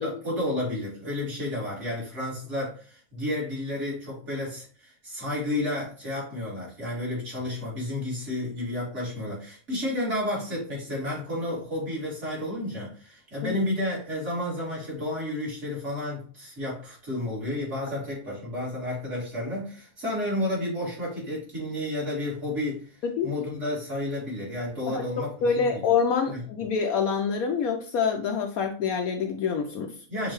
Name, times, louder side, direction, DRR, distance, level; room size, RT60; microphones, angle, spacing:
voice 1, 0.0-23.0 23.2-25.8 26.3-26.4 30.1-30.3, left 1 dB, 45° right, -5 dB, 2.9 m, -31 dB
voice 2, 25.4-29.9, left 6 dB, 70° left, 3 dB, 1.0 m, -26 dB
6.2 x 2.7 x 3.1 m, 0.41 s
omnidirectional pair, 1.6 m